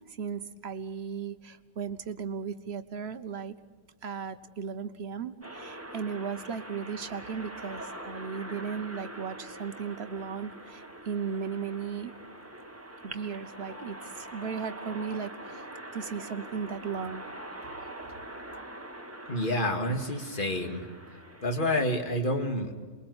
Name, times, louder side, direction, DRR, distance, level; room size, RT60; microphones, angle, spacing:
voice 1, 0.1-3.6 4.0-12.1 13.0-15.7 15.9-17.3 17.6-17.7 18.0-18.1, right 6 dB, 45° right, 11 dB, 1.2 m, -36 dB
sound 1, 5.4-22.0, right 1 dB, 10° right, 1.5 m, -44 dB
voice 2, 19.3-20.9 21.4-22.7, left 1 dB, 35° left, 5 dB, 2.3 m, -28 dB
28.0 x 22.0 x 8.0 m, 1.5 s
omnidirectional pair, 1.6 m